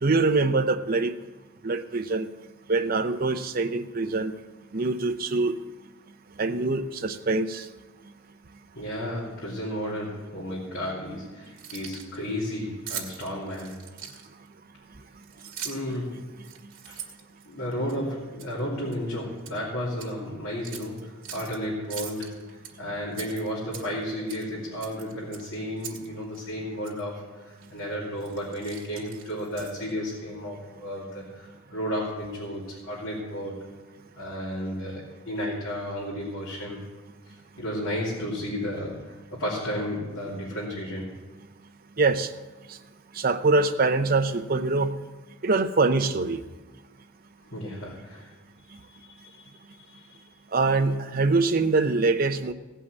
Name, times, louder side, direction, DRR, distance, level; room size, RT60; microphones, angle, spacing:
voice 1, 0.0-1.1 1.6-2.3 2.7-4.3 4.7-5.6 6.4-7.7 42.0-42.3 43.1-45.0 45.4-46.4 50.5-52.5, right 3 dB, 40° right, 9 dB, 0.6 m, -24 dB
voice 2, 8.7-13.8 15.6-16.3 16.9-17.0 17.5-33.7 34.2-36.9 37.3-41.1 47.5-48.3 48.6-50.2, equal, 65° left, -7 dB, 2.8 m, -33 dB
Keys jangling, 11.4-12.2 12.9-14.5 15.2-16.0 16.4-17.9 18.4-18.6 18.9-19.6 19.9-20.1 20.6-21.6 21.9-22.7 23.1-24.0 24.3-24.5 24.8-26.1 26.3-26.4 26.8-27.0 27.6-27.8 28.2-29.9, right 8 dB, 85° right, 1.8 m, -41 dB
16.5 x 5.6 x 8.1 m, 1.2 s
head